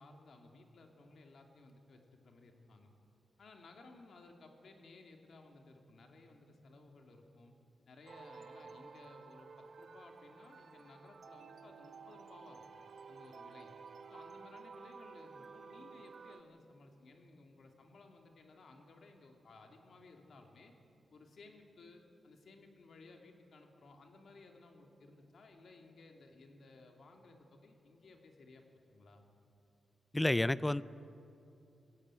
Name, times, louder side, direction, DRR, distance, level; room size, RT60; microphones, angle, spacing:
voice 1, 0.0-2.9 3.4-7.6 7.9-12.8 13.1-13.7 14.1-20.7 21.1-28.6 28.9-29.2, left 3 dB, 65° left, 3 dB, 2.7 m, -58 dB
sound 1, 8.1-16.4, right 5 dB, 60° right, 1.1 m, -53 dB
voice 2, 30.1-30.8, left 1 dB, 15° left, 17 dB, 0.4 m, -30 dB
20.5 x 16.0 x 9.1 m, 2.7 s
cardioid pair, 100°, 0 cm